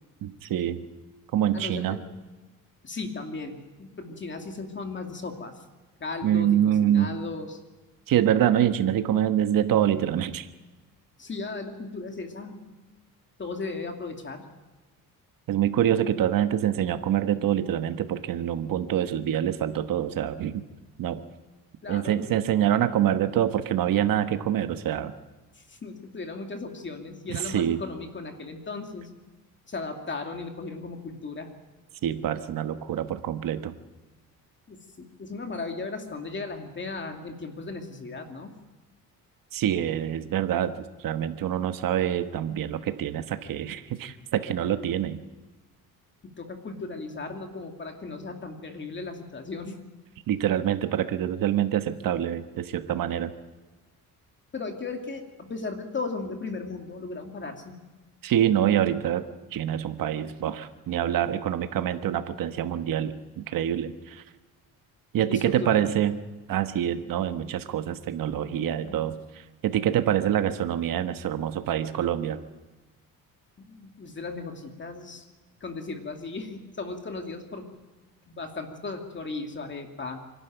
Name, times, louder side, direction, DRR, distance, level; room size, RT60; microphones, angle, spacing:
voice 1, 0.2-0.8 1.3-2.0 6.2-7.2 8.1-10.5 15.5-20.6 21.0-21.2 21.9-25.1 27.3-27.8 32.0-33.7 39.5-45.2 50.3-53.3 58.2-64.2 65.1-66.2 66.5-69.1 69.6-72.4, right 10 dB, 70° right, 9 dB, 1.3 m, -26 dB
voice 2, 1.5-2.2 2.8-5.6 6.0-7.6 11.2-12.6 13.4-14.5 21.8-22.5 25.5-29.1 29.7-31.5 34.7-38.5 46.2-49.8 54.5-57.8 65.3-66.0 68.5-69.0 73.6-75.2 75.6-77.7 78.3-80.2, left 3 dB, 30° left, 4 dB, 2.6 m, -36 dB
25.0 x 12.0 x 9.1 m, 1.2 s
cardioid pair, 110°, 35 cm